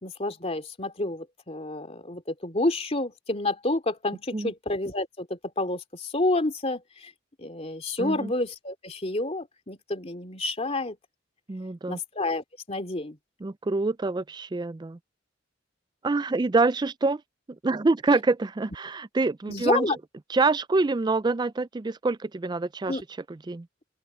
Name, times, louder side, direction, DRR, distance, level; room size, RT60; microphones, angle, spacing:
voice 1, 0.0-7.1 7.4-11.0 11.9-13.2 19.5-20.0 22.9-23.0, left 2 dB, 35° left, 2.7 m, -29 dB
voice 2, 8.0-8.3 11.5-12.0 13.4-15.0 16.0-17.2 17.6-19.9 20.3-23.0 23.5-23.7, right 3 dB, 20° right, 0.4 m, -26 dB
open air
head